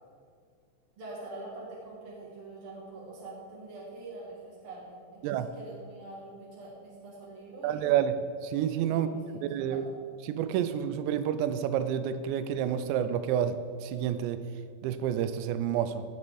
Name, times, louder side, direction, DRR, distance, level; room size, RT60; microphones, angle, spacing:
voice 1, 1.0-8.1 8.9-9.9, right 2 dB, 50° right, -5 dB, 1.7 m, -45 dB
voice 2, 7.6-9.1 9.5-9.9 10.3-14.4 14.8-16.0, right 9 dB, 90° right, 11 dB, 2.8 m, -29 dB
17.0 x 6.0 x 4.7 m, 2.2 s
omnidirectional pair, 5.0 m